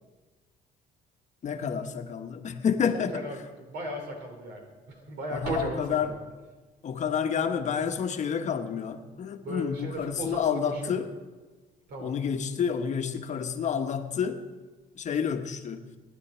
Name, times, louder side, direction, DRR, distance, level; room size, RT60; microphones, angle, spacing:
voice 1, 1.4-3.3 5.3-6.1 6.8-11.1 12.0-14.4 15.0-15.9, left 7 dB, 45° left, 1.1 m, -29 dB
voice 2, 2.9-3.4 3.7-6.2 9.4-11.0 11.9-12.2, right 1 dB, 75° right, 4.2 m, -36 dB
25.0 x 10.5 x 4.4 m
cardioid pair, 110°, 17 cm